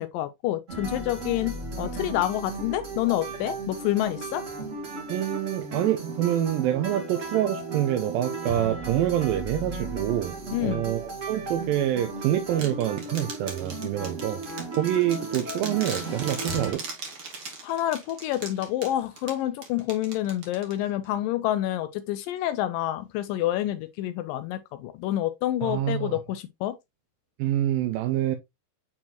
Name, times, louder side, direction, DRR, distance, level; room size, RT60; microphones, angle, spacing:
voice 1, 0.0-4.4 10.5-10.9 17.6-26.8, left 13 dB, 85° left, 1.9 m, -28 dB
sound 1, 0.7-16.7, right 2 dB, 40° right, 1.1 m, -35 dB
voice 2, 5.1-10.3 10.6-14.4 14.7-16.8 25.6-26.2 27.4-28.4, right 12 dB, 80° right, 2.2 m, -26 dB
sound 2, 12.6-21.0, right 4 dB, 60° right, 1.1 m, -39 dB
7.3 x 4.5 x 2.9 m
omnidirectional pair, 4.5 m